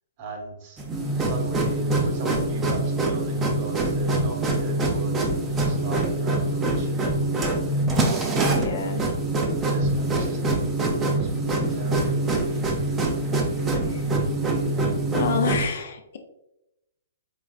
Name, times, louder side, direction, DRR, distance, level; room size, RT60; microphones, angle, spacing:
voice 1, 0.2-0.8 1.2-8.2 9.6-11.5 11.7-12.2, right 2 dB, 40° right, 2 dB, 1.0 m, -39 dB
sound 1, 0.8-15.7, right 2 dB, 20° right, 0.6 m, -24 dB
voice 2, 8.6-9.0 13.9-14.0 15.1-16.2, left 5 dB, 60° left, 5 dB, 0.6 m, -28 dB
4.7 x 3.2 x 2.3 m, 0.90 s
hypercardioid pair, 130°, 0 cm